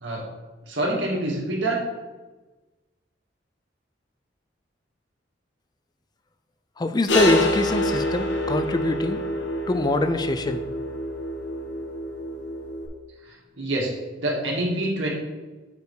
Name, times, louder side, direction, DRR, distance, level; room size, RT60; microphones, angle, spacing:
voice 1, 0.7-1.8 13.6-13.9 14.2-15.1, right 1 dB, 75° right, -2 dB, 1.8 m, -26 dB
voice 2, 6.8-9.2 9.7-10.6, left 2 dB, 20° left, 9 dB, 0.4 m, -24 dB
sound 1, 7.1-12.9, left 1 dB, 70° left, 1.2 m, -26 dB
6.9 x 4.9 x 4.7 m, 1.2 s
head